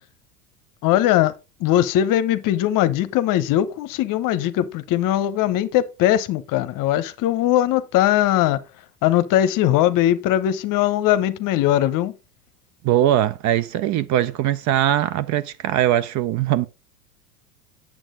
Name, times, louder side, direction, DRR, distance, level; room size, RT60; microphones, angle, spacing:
voice 1, 0.8-1.3 1.6-8.6 9.0-12.1, left 12 dB, 45° left, 0.9 m, -20 dB
voice 2, 12.8-16.7, right 12 dB, 40° right, 0.6 m, -21 dB
9.0 x 7.5 x 3.8 m
hypercardioid pair, 80°, 46 cm